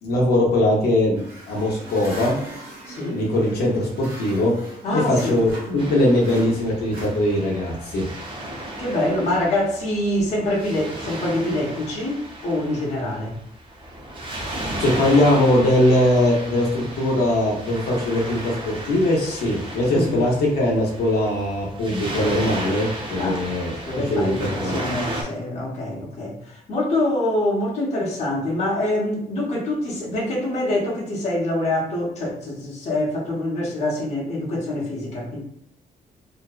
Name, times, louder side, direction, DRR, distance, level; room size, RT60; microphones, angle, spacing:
voice 1, 0.0-2.3 3.1-4.5 4.9-8.0 14.8-23.7 24.1-24.8, left 1 dB, 85° left, -2 dB, 0.7 m, -21 dB
sound 1, 1.1-5.9 6.2-7.7, right 2 dB, 65° right, 1.1 m, -39 dB
voice 2, 2.9-3.3 4.8-5.4 5.7-5.9 8.8-13.4 19.9-20.2 23.2-23.4 23.9-35.4, left 1 dB, 45° left, -4 dB, 0.8 m, -25 dB
Waves surf, 5.8-25.2, right 1 dB, 30° right, 0.5 m, -34 dB
2.5 x 2.1 x 2.3 m, 0.73 s
cardioid pair, 150°, 16 cm